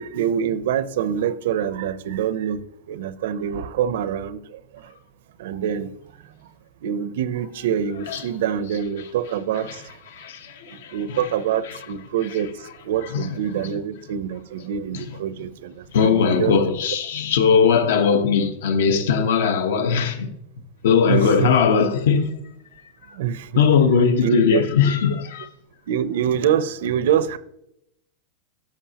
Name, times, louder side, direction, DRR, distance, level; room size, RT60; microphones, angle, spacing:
voice 1, 0.0-2.6 2.9-4.6 5.4-5.9 6.8-9.8 10.9-12.5 12.8-16.6 21.1-21.5 23.1-23.6 24.2-24.7 25.9-27.4, right 9 dB, 70° right, 0.6 m, -25 dB
voice 2, 10.1-11.2 13.1-13.3 14.9-15.0 15.9-20.4 20.8-22.3 23.5-25.5, left 6 dB, 80° left, 1.1 m, -19 dB
13.0 x 5.2 x 2.9 m
supercardioid pair, 170°, 0 cm